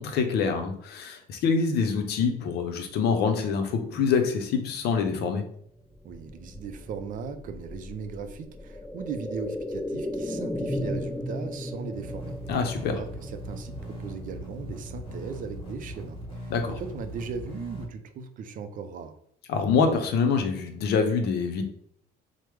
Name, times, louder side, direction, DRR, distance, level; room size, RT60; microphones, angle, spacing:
voice 1, 0.0-5.4 12.5-13.0 16.5-16.8 19.5-21.6, left 5 dB, 75° left, 6 dB, 0.6 m, -25 dB
sound 1, 5.8-15.6 15.9-16.0, left 1 dB, 10° left, 0.7 m, -36 dB
voice 2, 6.0-12.4 12.9-19.2, right 5 dB, 50° right, 8 dB, 0.4 m, -38 dB
sound 2, 12.0-17.9, equal, 30° left, 1.3 m, -39 dB
3.3 x 2.0 x 3.1 m, 0.68 s
cardioid pair, 110°, 17 cm